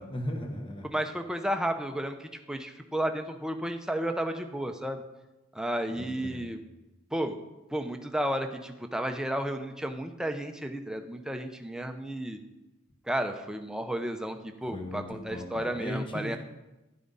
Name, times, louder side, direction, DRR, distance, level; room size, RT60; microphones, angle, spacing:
voice 1, 0.0-0.9 5.9-6.5 14.7-16.4, left 1 dB, 25° left, 3 dB, 1.3 m, -37 dB
voice 2, 0.8-5.0 5.5-6.6 7.1-7.4 7.7-12.4 13.1-16.4, right 1 dB, 5° right, 5 dB, 0.8 m, -32 dB
13.0 x 11.0 x 4.1 m, 1.0 s
head